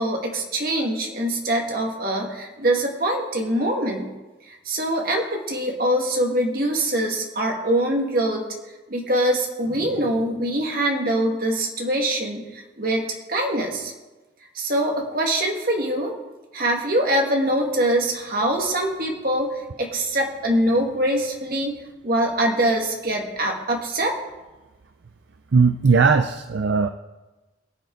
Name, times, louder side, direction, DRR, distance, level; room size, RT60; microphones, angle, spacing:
voice 1, 0.0-4.1 4.5-8.4 8.9-13.0 13.3-13.9 14.5-16.1 16.5-19.5 19.8-21.7 22.0-24.2, right 1 dB, 50° right, 1 dB, 2.1 m, -23 dB
voice 2, 25.5-26.9, right 5 dB, 65° right, 8 dB, 0.5 m, -18 dB
22.5 x 7.7 x 4.0 m, 1.1 s
head